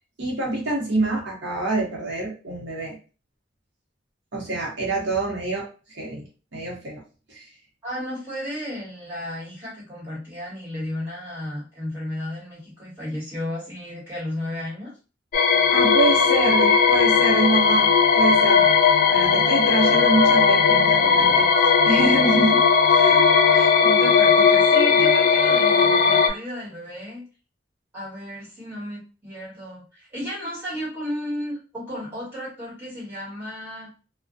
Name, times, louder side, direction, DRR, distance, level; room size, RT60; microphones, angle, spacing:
voice 1, 0.2-3.0 4.3-6.2 6.5-7.0 7.3-7.5 15.7-23.3, right 2 dB, 75° right, -3 dB, 0.8 m, -26 dB
voice 2, 7.8-14.9 23.5-27.2 27.9-33.9, left 1 dB, 10° right, -7 dB, 1.4 m, -33 dB
sound 1, 15.3-26.3, left 5 dB, 50° left, 0.3 m, -17 dB
2.4 x 2.1 x 2.5 m, 0.35 s
head